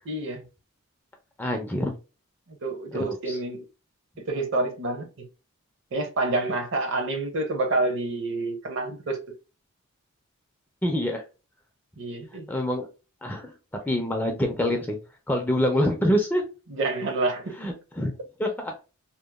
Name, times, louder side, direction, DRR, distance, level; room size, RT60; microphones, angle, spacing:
voice 1, 0.1-0.4 2.6-3.6 4.3-5.1 5.9-9.2 12.0-12.5 16.7-17.6, right 2 dB, 55° right, 0.6 m, -28 dB
voice 2, 1.4-1.9 2.9-3.4 10.8-11.2 12.5-12.9 13.2-13.5 13.8-15.0 15.3-16.4 17.6-18.1 18.4-18.7, equal, 10° left, 0.3 m, -25 dB
2.8 x 2.0 x 2.2 m
head